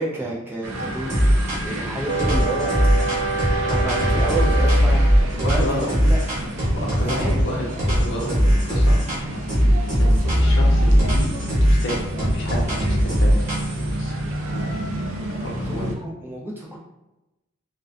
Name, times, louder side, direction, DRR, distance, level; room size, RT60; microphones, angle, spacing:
voice 1, 0.0-2.7 3.6-6.2 7.0-7.3 10.0-10.3 15.7-16.8, right 1 dB, 10° right, -4 dB, 0.4 m, -30 dB
sound 1, 0.6-16.0, right 1 dB, 75° right, 0.4 m, -30 dB
sound 2, 1.1-1.8 2.2-7.5 7.8-9.2 9.5-13.9, equal, 35° right, 1.0 m, -19 dB
sound 3, 2.1-5.3, right 3 dB, 25° left, 0.7 m, -26 dB
voice 2, 5.4-5.9 6.6-14.1 14.4-15.9, equal, 60° left, -2 dB, 0.6 m, -32 dB
2.4 x 2.2 x 2.3 m, 0.95 s
head